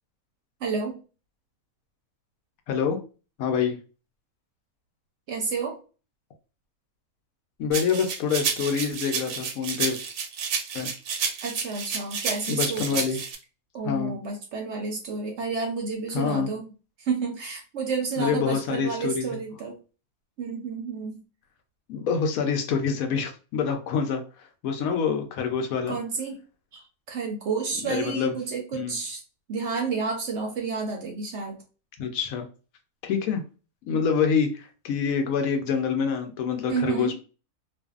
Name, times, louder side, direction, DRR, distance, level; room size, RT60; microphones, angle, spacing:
voice 1, 0.6-1.0 5.3-5.8 11.4-13.1 13.7-16.7 17.0-19.7 20.4-21.2 25.9-26.4 26.7-29.2 29.5-31.6 36.7-37.1, right 4 dB, 60° right, 2 dB, 0.8 m, -30 dB
voice 2, 2.7-3.0 3.4-3.8 7.6-10.0 10.7-10.9 12.5-13.2 13.8-14.1 16.1-16.5 18.2-19.4 21.9-26.0 27.8-28.4 28.7-29.0 32.0-32.5 33.0-33.4 33.9-37.1, left 6 dB, 75° left, 5 dB, 1.0 m, -26 dB
sound 1, 7.7-13.3, right 6 dB, 85° right, 1.1 m, -30 dB
2.5 x 2.4 x 2.3 m, 0.35 s
omnidirectional pair, 1.5 m